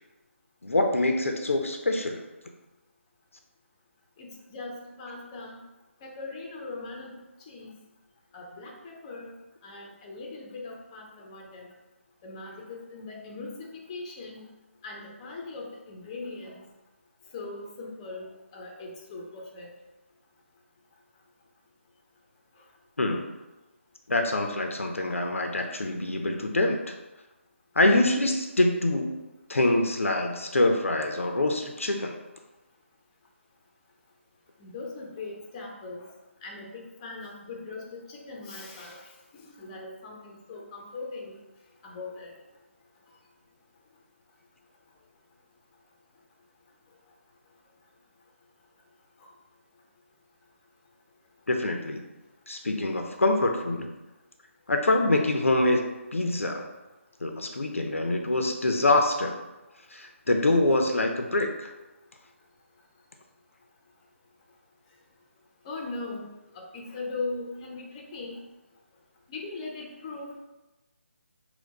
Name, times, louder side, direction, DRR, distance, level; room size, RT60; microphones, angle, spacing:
voice 1, 0.6-2.2 23.0-23.3 24.1-26.9 27.8-29.2 29.5-32.2 51.5-52.0 52.5-53.9 54.7-56.7 57.2-59.4 59.9-61.7, left 2 dB, 70° left, 4 dB, 0.5 m, -25 dB
voice 2, 4.2-5.6 6.0-7.2 7.5-7.7 8.3-9.3 9.6-11.7 12.2-13.6 13.9-14.4 14.8-16.6 17.3-19.7 34.6-36.1 36.4-41.4 41.8-42.3 65.6-66.3 66.5-68.4 69.3-70.4, left 3 dB, 20° left, -1 dB, 0.6 m, -40 dB
4.3 x 2.2 x 4.1 m, 1.1 s
figure-of-eight pair, 145°, 7 cm